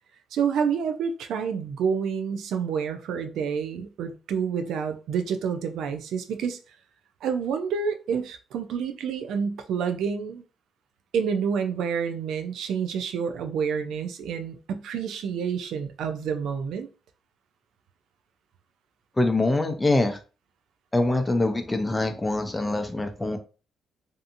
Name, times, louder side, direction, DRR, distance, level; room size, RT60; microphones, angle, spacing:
voice 1, 0.3-6.6 7.2-10.4 11.1-16.9, right 6 dB, 80° right, 0.4 m, -28 dB
voice 2, 19.2-20.2 20.9-23.4, left 2 dB, 15° left, 0.5 m, -24 dB
2.7 x 2.5 x 2.5 m
cardioid pair, 90°, 0 cm